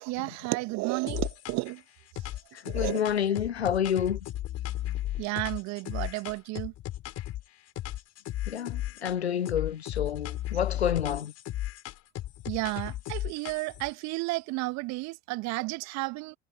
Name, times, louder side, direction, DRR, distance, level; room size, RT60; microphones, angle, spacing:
voice 1, 0.0-1.8 2.7-3.0 5.2-6.7 12.5-16.4, right 24 dB, 60° right, 1.8 m, -32 dB
sound 1, 1.1-1.8 2.2-7.4 7.8-9.2 9.5-13.9, left 14 dB, 50° left, 4.0 m, -35 dB
voice 2, 2.7-4.2 8.5-11.3, left 9 dB, 85° left, 0.7 m, -29 dB
figure-of-eight pair, 55°, 31 cm